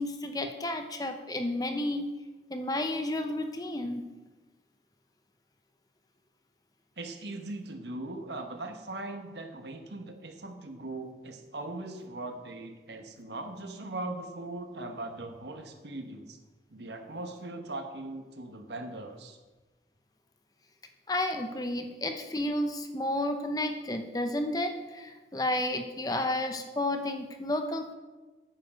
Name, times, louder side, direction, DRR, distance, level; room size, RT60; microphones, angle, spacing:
voice 1, 0.0-2.1 2.5-4.0 21.1-27.9, left 1 dB, 20° left, 6 dB, 0.7 m, -31 dB
voice 2, 7.0-16.4 16.7-19.4, right 2 dB, 75° right, 6 dB, 1.2 m, -40 dB
9.4 x 7.2 x 6.4 m, 1.2 s
head